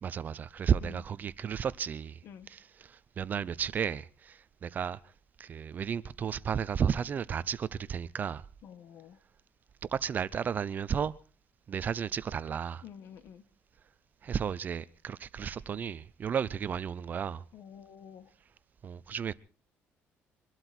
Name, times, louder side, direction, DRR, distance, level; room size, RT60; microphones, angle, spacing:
voice 1, 0.0-2.2 2.5-2.6 3.2-5.0 5.4-8.4 9.9-11.1 11.7-12.8 14.2-17.4 18.8-19.3, right 7 dB, 40° right, 0.7 m, -33 dB
voice 2, 8.6-9.2 12.8-13.4 17.5-18.3, left 8 dB, 60° left, 1.7 m, -49 dB
24.0 x 12.0 x 4.5 m
cardioid pair, 130°, 5 cm